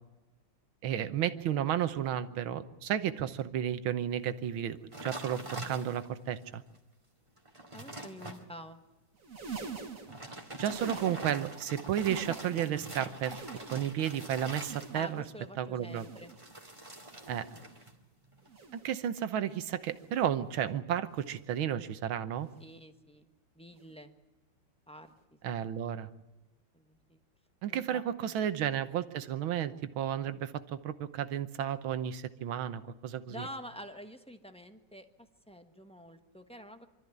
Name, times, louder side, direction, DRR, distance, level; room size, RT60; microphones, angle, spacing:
voice 1, 0.8-6.6 10.6-13.4 13.7-15.2 15.6-16.1 17.3-17.5 18.7-22.5 25.4-26.1 27.6-33.5, right 10 dB, 85° right, 12 dB, 1.8 m, -33 dB
sound 1, 4.9-6.2 6.7-6.8 7.3-8.4 10.0-15.2 16.3-18.0 18.2-18.6, right 1 dB, 15° right, 2.1 m, -44 dB
voice 2, 7.7-8.8 11.0-11.2 14.9-16.3 22.6-23.3 23.5-24.1 24.9-25.5 26.7-27.2 27.7-28.0 33.3-35.1 35.5-36.9, equal, 5° left, 6 dB, 0.9 m, -47 dB
sound 2, 9.1-11.6 11.8-12.8 13.1-14.1 14.5-15.4 15.8-16.6 17.1-17.8 18.4-19.0 19.7-20.3 21.1-21.5 22.4-22.7 23.7-23.9 25.1-25.2, right 5 dB, 40° right, 2.2 m, -46 dB
25.0 x 13.5 x 9.4 m, 1.1 s
omnidirectional pair, 2.2 m